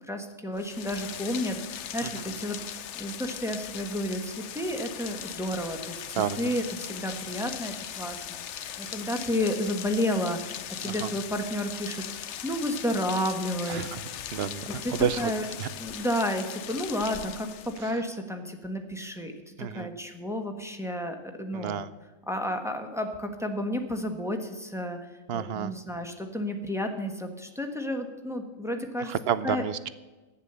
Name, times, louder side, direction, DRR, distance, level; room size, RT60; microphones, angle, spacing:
voice 1, 0.1-8.4 8.8-13.9 14.8-15.4 15.8-21.8 22.3-25.0 25.3-29.1 29.4-29.6, left 1 dB, ahead, 4 dB, 1.3 m, -31 dB
Rain, 0.5-17.9, left 9 dB, 65° left, 0.9 m, -39 dB
voice 2, 6.1-6.5 10.9-11.1 13.7-14.0 14.3-15.3 15.6-15.7 19.6-19.9 21.5-21.9 25.3-25.7 29.1-29.9, right 8 dB, 55° right, 15 dB, 0.8 m, -30 dB
11.5 x 9.6 x 6.8 m, 1.2 s
omnidirectional pair, 1.4 m